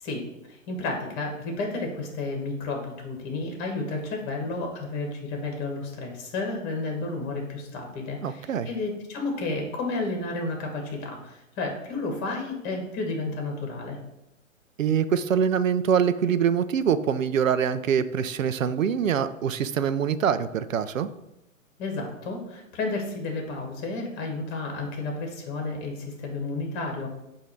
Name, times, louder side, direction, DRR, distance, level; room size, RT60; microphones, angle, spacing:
voice 1, 0.0-14.0 21.8-27.1, left 3 dB, 25° left, 2 dB, 1.5 m, -32 dB
voice 2, 8.2-8.7 14.8-21.1, right 7 dB, 70° right, 12 dB, 0.6 m, -24 dB
8.1 x 2.8 x 4.4 m, 0.89 s
figure-of-eight pair, 125°, 41 cm